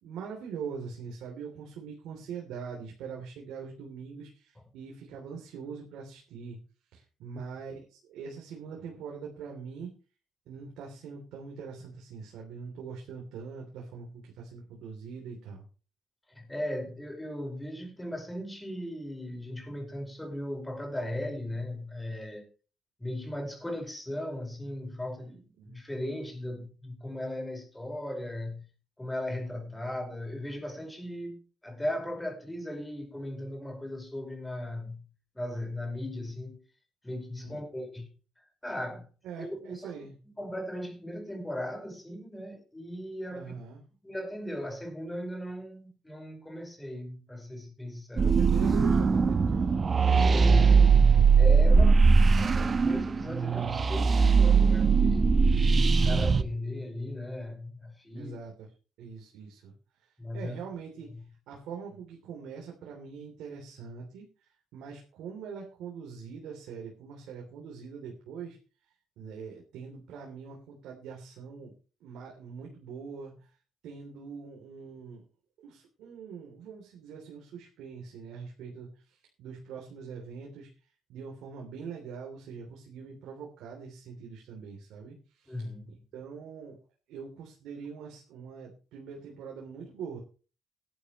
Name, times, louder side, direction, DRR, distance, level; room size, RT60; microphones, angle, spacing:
voice 1, 0.0-6.6 6.9-9.9 10.5-15.6 25.6-25.8 37.4-37.6 39.2-40.2 43.3-43.8 48.2-49.8 51.7-52.2 58.1-58.5 59.0-59.7 60.3-61.1 61.5-64.3 64.7-68.6 69.2-71.7 72.0-73.4 73.8-75.2 75.6-80.7 81.1-85.7 86.1-86.8 87.1-90.2, right 6 dB, 90° right, 3.2 m, -43 dB
voice 2, 16.3-22.5 23.0-28.7 29.0-35.1 35.4-36.6 37.0-38.1 38.4-39.1 39.4-40.0 40.4-43.5 44.0-48.4 50.1-55.4 55.9-58.4 60.2-60.6 61.1-61.2 85.5-86.0, left 1 dB, 10° left, 5.1 m, -37 dB
sound 1, 48.2-56.4, right 5 dB, 40° right, 1.1 m, -21 dB
17.5 x 11.5 x 3.2 m
cardioid pair, 90°, 0 cm